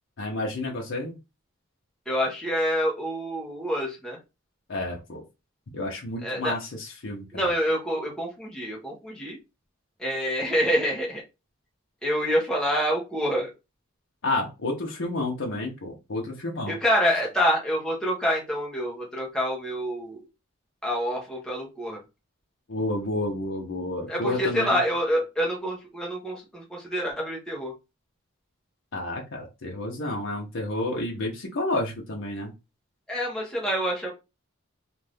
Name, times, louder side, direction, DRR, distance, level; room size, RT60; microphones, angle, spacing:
voice 1, 0.2-1.2 4.7-5.2 5.7-7.5 14.2-16.8 22.7-24.8 28.9-32.5, left 2 dB, 60° left, 0 dB, 0.7 m, -30 dB
voice 2, 2.1-4.2 6.2-6.6 7.3-9.4 10.0-11.2 12.0-13.5 16.7-20.2 20.8-22.0 24.1-27.7 33.1-34.1, equal, 5° left, -3 dB, 0.8 m, -27 dB
2.6 x 2.5 x 3.4 m, 0.26 s
head